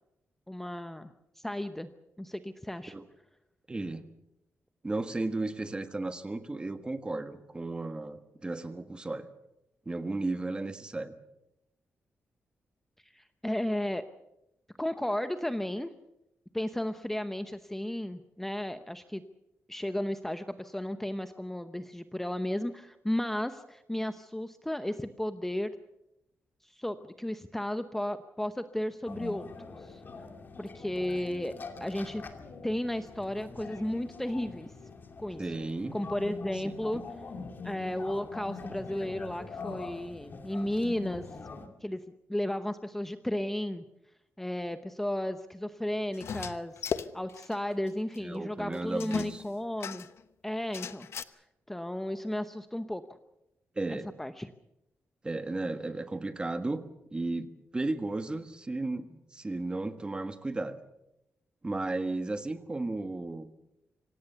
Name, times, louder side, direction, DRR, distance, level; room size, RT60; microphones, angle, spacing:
voice 1, 0.5-1.9 2.2-2.9 13.0-14.0 14.8-15.9 16.5-19.2 19.7-25.7 26.6-30.0 30.6-31.5 31.8-32.2 32.6-34.7 35.2-35.4 35.9-37.0 37.6-41.3 41.8-42.0 42.3-43.8 44.4-50.1 50.4-51.1 51.7-53.0 53.9-54.5, left 1 dB, 5° left, 9 dB, 0.8 m, -34 dB
voice 2, 3.7-4.0 4.8-9.3 9.8-11.1 35.4-35.9 36.6-37.0 48.2-49.4 53.7-54.1 55.2-56.8 57.1-60.8 61.6-63.5, right 2 dB, 20° right, 9 dB, 1.5 m, -34 dB
sound 1, 29.1-41.7, left 4 dB, 45° left, 2.7 m, -44 dB
sound 2, 46.1-47.6 47.9-48.0 48.1-48.2 49.0-50.2 50.7-51.2, left 7 dB, 70° left, 0.9 m, -36 dB
26.0 x 17.5 x 6.9 m, 0.88 s
wide cardioid pair, 130°, 5 cm